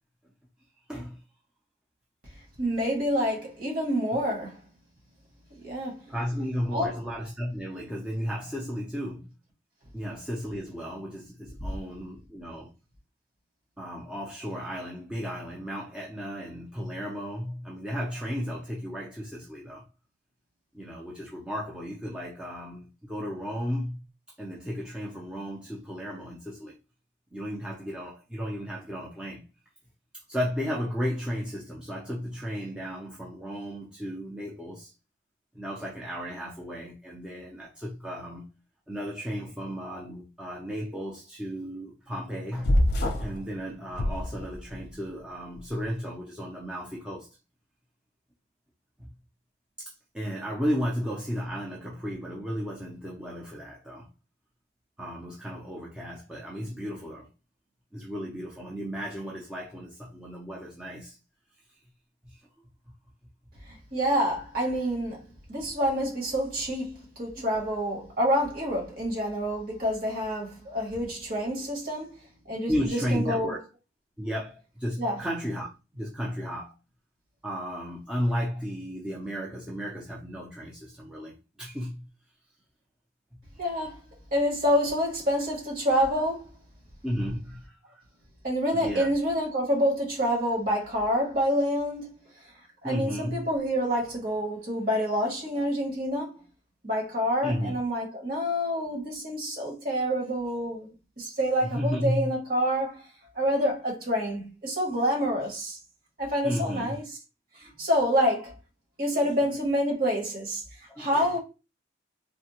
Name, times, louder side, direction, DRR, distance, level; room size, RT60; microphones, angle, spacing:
voice 1, 0.9-1.2 4.1-4.2 6.1-9.3 9.9-12.7 13.8-19.8 20.7-24.0 24.4-26.7 27.3-29.4 30.3-34.9 35.5-38.4 38.9-42.7 43.2-47.3 49.0-49.1 49.8-54.1 55.0-57.3 57.9-61.2 62.2-62.4 67.3-67.5 72.7-73.6 74.2-75.7 75.9-76.7 77.4-82.1 87.0-88.0 88.7-89.1 92.8-93.5 97.4-97.8 101.6-102.3 106.4-106.9 109.1-109.5 110.9-111.2, equal, 5° right, 0.5 m, -34 dB
voice 2, 2.6-4.6 5.6-6.1 6.7-6.9 63.7-72.1 72.4-73.6 75.0-75.2 83.6-84.0 84.3-86.5 88.4-92.1 92.8-96.3 96.8-103.0 103.3-105.8 106.2-107.0 107.5-108.5 109.0-110.6 111.0-111.4, equal, 50° right, 1.4 m, -27 dB
sound 1, 42.6-43.4 43.9-44.8, left 1 dB, 55° left, 0.6 m, -25 dB
3.4 x 2.2 x 2.8 m
head